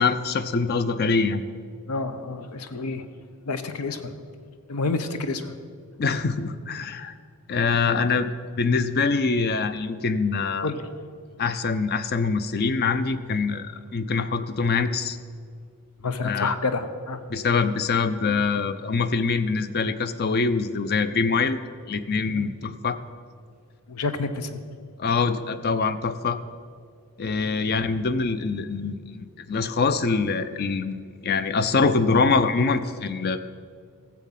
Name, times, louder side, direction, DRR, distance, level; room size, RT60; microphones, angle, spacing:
voice 1, 0.0-1.4 6.0-7.1 7.5-8.3 8.6-10.7 11.4-15.2 16.2-16.5 17.3-21.6 21.9-23.0 25.0-26.4 27.2-33.4, left 4 dB, 45° left, 12 dB, 0.5 m, -24 dB
voice 2, 1.9-3.0 3.4-4.1 4.7-5.5 10.6-10.9 16.0-17.2 22.3-22.5 23.9-24.6 27.3-27.4, left 3 dB, 90° left, 10 dB, 0.8 m, -29 dB
14.5 x 7.4 x 5.8 m, 2.1 s
head